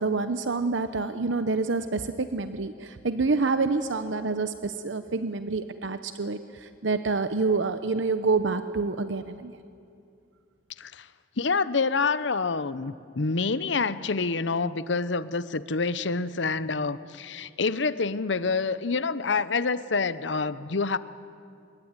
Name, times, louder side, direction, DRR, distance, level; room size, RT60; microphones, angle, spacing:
voice 1, 0.0-9.5, right 3 dB, 80° right, 10 dB, 0.9 m, -27 dB
voice 2, 11.4-21.0, left 4 dB, 75° left, 15 dB, 0.9 m, -27 dB
25.5 x 22.0 x 9.6 m, 2.5 s
head